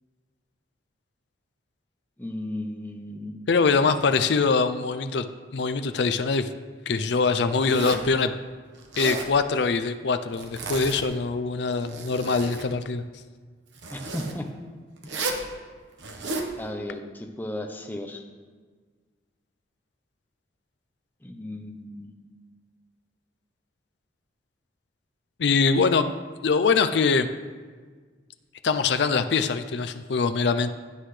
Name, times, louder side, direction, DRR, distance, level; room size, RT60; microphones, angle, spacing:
voice 1, 2.2-3.3 13.9-14.5 15.0-15.1 16.6-18.2 21.2-22.1, left 1 dB, 10° left, 3 dB, 0.8 m, -35 dB
voice 2, 3.5-5.2 5.5-6.5 6.9-8.3 9.0-13.0 25.4-26.1 26.4-27.3 28.6-30.7, left 4 dB, 65° left, 10 dB, 0.5 m, -23 dB
Zipper (clothing), 7.6-8.1 8.8-9.3 10.3-11.1 11.7-12.7 13.8-14.3 15.0-15.5 16.0-16.5, right 3 dB, 75° right, 1.2 m, -33 dB
16.0 x 8.1 x 3.3 m, 1.5 s
head